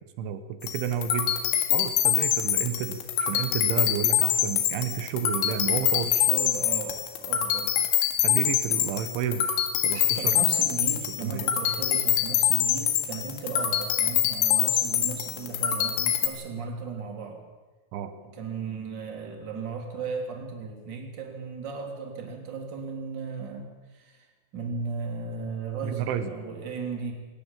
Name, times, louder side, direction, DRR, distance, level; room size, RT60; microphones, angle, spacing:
voice 1, 0.2-1.3 1.7-6.1 8.2-9.5 9.8-10.4 11.2-11.5 17.9-18.1 25.8-26.3, right 8 dB, 90° right, 9 dB, 3.8 m, -31 dB
sound 1, 0.6-16.3, left 10 dB, 85° left, 4.2 m, -25 dB
voice 2, 6.1-7.8 9.9-17.4 18.2-24.3 24.5-27.1, right 4 dB, 25° right, 2 dB, 3.2 m, -36 dB
21.0 x 19.0 x 7.5 m, 1.3 s
omnidirectional pair, 5.3 m